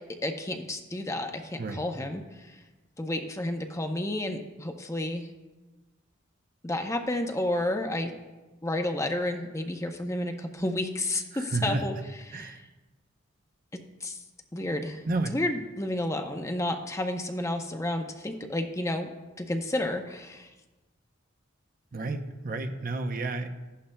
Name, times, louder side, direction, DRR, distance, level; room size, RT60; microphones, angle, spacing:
voice 1, 0.2-2.6 3.0-5.3 6.6-8.1 8.6-11.9 12.3-12.6 13.7-14.2 14.5-15.0 15.3-19.1 19.4-20.5, left 1 dB, 15° left, 4 dB, 0.6 m, -31 dB
voice 2, 11.3-11.8 12.3-12.6 15.0-15.3 21.9-23.5, right 2 dB, 45° right, 6 dB, 0.7 m, -31 dB
15.0 x 11.5 x 2.2 m, 1.2 s
head